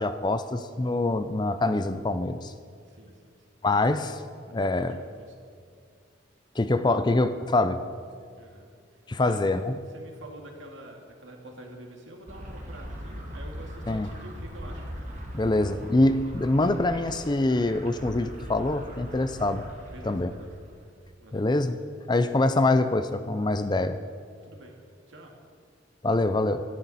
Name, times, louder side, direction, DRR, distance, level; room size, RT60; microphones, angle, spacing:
voice 1, 0.0-2.5 3.6-4.2 4.5-5.0 6.6-7.8 9.1-9.7 13.9-14.1 15.3-19.6 20.0-20.3 21.3-21.8 22.1-24.0 26.0-26.6, left 2 dB, 25° left, 11 dB, 0.5 m, -25 dB
voice 2, 2.8-3.3 4.6-4.9 5.2-5.3 8.3-9.5 9.9-14.9 19.9-20.5 21.2-21.4 24.4-24.8 25.1-25.3, right 1 dB, 80° right, 1 dB, 2.2 m, -47 dB
sound 1, 12.3-20.8, equal, 40° right, 2.1 m, -40 dB
16.5 x 12.0 x 4.2 m, 2.1 s
head